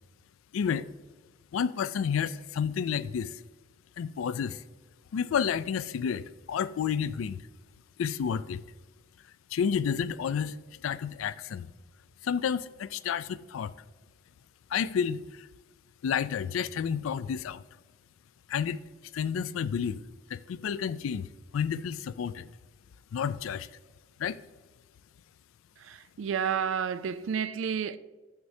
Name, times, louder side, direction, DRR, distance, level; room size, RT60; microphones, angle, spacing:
voice 1, 0.5-0.9 1.5-3.4 4.0-4.6 5.1-7.4 8.0-8.6 9.5-10.6 10.8-11.7 12.2-13.7 14.7-15.5 16.0-17.6 18.5-18.8 19.1-20.0 20.3-21.3 21.5-22.5 23.1-23.7 24.2-24.4, left 7 dB, 85° left, 0.3 m, -30 dB
voice 2, 25.8-28.0, right 7 dB, 75° right, 0.4 m, -31 dB
9.4 x 7.0 x 2.7 m
head